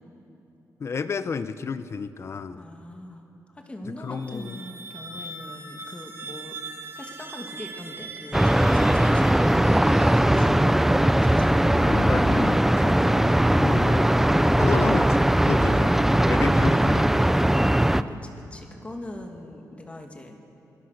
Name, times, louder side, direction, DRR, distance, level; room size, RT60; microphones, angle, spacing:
voice 1, 0.8-2.6 4.0-4.6 11.8-14.1 14.6-16.0 16.3-17.2, left 5 dB, 45° left, 13 dB, 0.7 m, -31 dB
voice 2, 2.5-6.6 7.0-9.6 10.2-12.2 12.8-13.2 17.8-20.4, left 1 dB, 20° left, 3 dB, 2.4 m, -41 dB
sound 1, 4.0-10.7, right 3 dB, 40° right, 1.7 m, -41 dB
sound 2, 8.3-18.0, right 1 dB, 5° right, 0.5 m, -19 dB
27.5 x 20.5 x 6.6 m, 2.8 s
wide cardioid pair, 135°, 7 cm